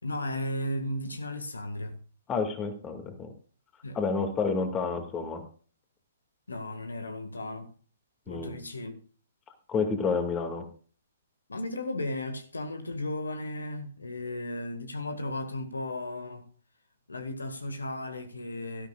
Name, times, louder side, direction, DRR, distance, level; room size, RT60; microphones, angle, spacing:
voice 1, 0.0-2.0 3.8-4.0 6.5-7.7 8.3-9.0 11.5-16.5 17.1-18.9, left 1 dB, 75° left, 1.9 m, -35 dB
voice 2, 2.3-3.3 3.9-5.4 8.3-8.6 9.7-10.7, left 4 dB, 20° left, 2.2 m, -29 dB
18.0 x 13.0 x 2.5 m
figure-of-eight pair, 125°, 0 cm